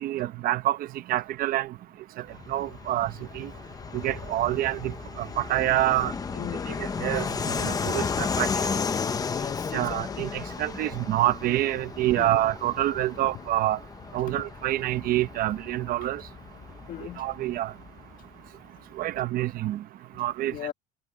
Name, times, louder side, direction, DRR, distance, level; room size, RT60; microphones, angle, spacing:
voice 1, 0.0-0.8 1.1-1.7 2.5-3.5 3.9-6.1 6.8-7.2 7.6-8.5 9.7-13.8 14.1-16.2 17.2-17.7 19.0-19.8 20.2-20.5, right 14 dB, 45° right, 0.9 m, -27 dB
Fixed-wing aircraft airplane, 2.3-18.5, left 5 dB, 15° left, 0.9 m, -34 dB
voice 2, 6.4-6.8 9.3-10.2 12.2-12.4 16.9-17.2 20.4-20.7, left 11 dB, 40° left, 1.5 m, -38 dB
cardioid pair, 155°, 21 cm